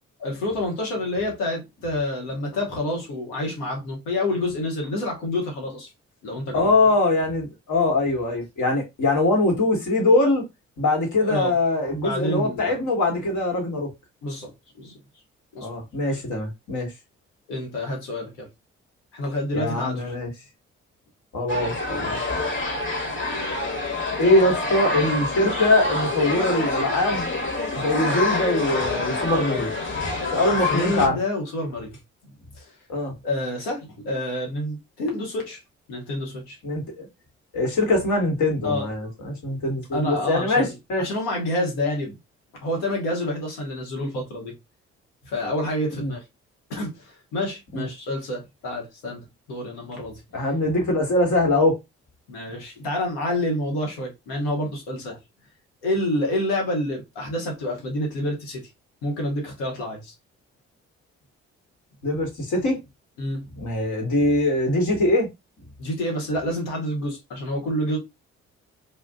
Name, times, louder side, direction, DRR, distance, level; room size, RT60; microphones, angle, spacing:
voice 1, 0.2-5.9 6.2-6.7 11.2-11.5 11.9-12.8 14.2-14.5 14.8-15.0 15.5-15.7 17.5-18.5 19.1-20.1 30.7-32.0 32.3-32.8 33.2-35.6 35.9-36.6 38.6-39.5 39.9-42.2 42.6-44.5 45.2-46.2 46.7-50.2 52.3-55.2 55.8-58.7 59.0-60.1 63.2-63.5 65.8-68.0, left 1 dB, 90° left, 1.2 m, -28 dB
voice 2, 6.5-10.4 10.8-13.9 15.6-16.9 19.5-20.3 21.3-22.2 24.2-27.3 27.7-29.7 30.3-31.2 32.9-33.1 36.6-37.1 37.5-41.1 46.0-46.1 47.7-47.9 50.3-51.8 62.0-62.8 63.6-65.3, left 2 dB, 65° left, 1.5 m, -22 dB
sound 1, 21.5-31.1, left 2 dB, 35° left, 1.3 m, -26 dB
2.5 x 2.4 x 3.5 m
hypercardioid pair, 50°, 32 cm